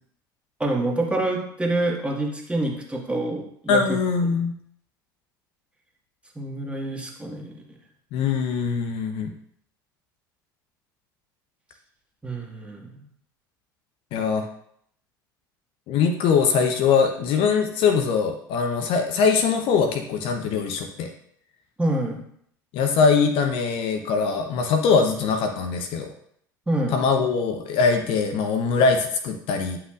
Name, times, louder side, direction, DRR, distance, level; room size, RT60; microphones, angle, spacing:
voice 1, 0.6-3.8 6.4-7.6 12.2-13.0 21.8-22.2 26.7-27.0, right 1 dB, 10° right, -1 dB, 1.8 m, -26 dB
voice 2, 3.7-4.5 8.1-9.3 14.1-14.5 15.9-21.1 22.7-26.1 26.9-29.8, left 5 dB, 55° left, 6 dB, 0.8 m, -22 dB
9.6 x 5.8 x 2.5 m, 0.67 s
hypercardioid pair, 70°, 11 cm